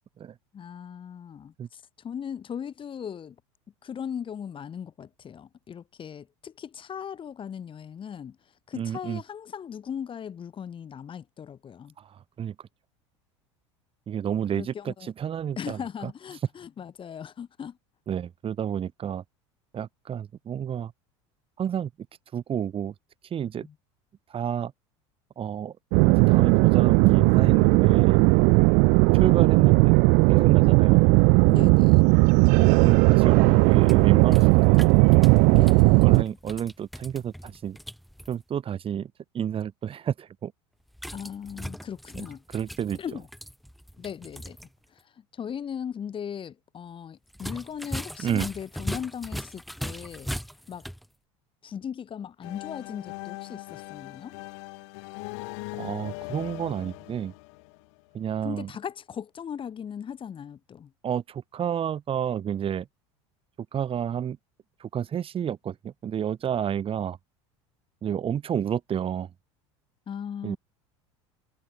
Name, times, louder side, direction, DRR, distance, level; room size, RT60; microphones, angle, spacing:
voice 1, 0.5-3.4 3.8-11.9 14.5-15.1 15.6-17.8 23.6-23.7 31.5-32.1 35.5-36.4 41.1-42.4 42.9-43.3 44.0-44.6 44.9-50.3 50.7-50.9 51.6-54.4 58.4-60.9 70.1-70.6, left 8 dB, 35° left, 6.5 m, -38 dB
voice 2, 8.8-9.2 12.0-12.6 14.1-16.1 18.1-19.2 19.7-20.9 21.6-21.9 22.3-22.9 23.3-23.7 24.3-24.7 25.4-25.8 26.0-28.2 29.1-30.0 30.3-31.1 32.6-34.5 36.0-37.8 38.3-40.5 42.2-42.3 42.5-43.0 48.2-48.5 55.7-57.3 58.1-58.7 61.0-62.9 63.7-64.4 64.8-67.2 68.0-69.3 70.4-70.6, right 9 dB, 35° right, 5.4 m, -30 dB
sound 1, 25.9-36.2, right 34 dB, 60° right, 0.5 m, -17 dB
sound 2, 33.6-38.3 40.9-44.7 45.0-45.1 47.3-51.1, equal, ahead, 2.7 m, -39 dB
sound 3, 52.4-58.2, left 30 dB, 70° left, 3.0 m, -40 dB
hypercardioid pair, 90°, 15 cm